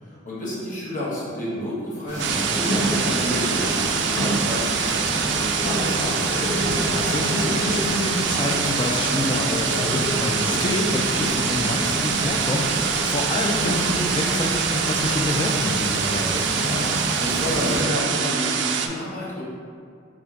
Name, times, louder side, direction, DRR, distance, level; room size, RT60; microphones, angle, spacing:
voice 1, 0.0-6.2 16.5-19.4, equal, 45° left, -7 dB, 1.1 m, -30 dB
sound 1, 2.1-17.8, equal, 75° left, 1.4 m, -29 dB
sound 2, 2.1-17.8, right 1 dB, 40° right, 0.7 m, -35 dB
sound 3, 2.2-18.9, right 7 dB, 65° right, 0.3 m, -25 dB
voice 2, 6.9-16.4, left 1 dB, 25° left, 2 dB, 0.4 m, -27 dB
3.8 x 2.5 x 4.3 m, 2.3 s
head